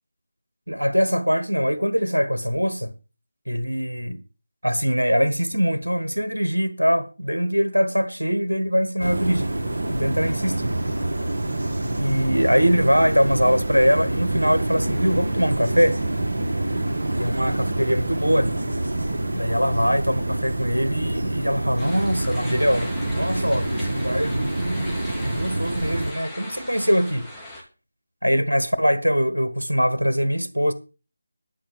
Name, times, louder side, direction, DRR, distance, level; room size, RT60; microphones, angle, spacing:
voice 1, 0.7-2.9 3.5-4.2 4.6-9.5 9.9-10.7 12.0-16.0 17.2-18.6 19.3-27.3 28.2-30.7, equal, 90° right, 1.4 m, -22 dB
sound 1, 9.0-26.1, right 1 dB, 60° right, 1.6 m, -26 dB
sound 2, 21.8-27.6, left 1 dB, 5° left, 2.8 m, -39 dB
11.5 x 5.8 x 6.7 m
figure-of-eight pair, 160°, 0 cm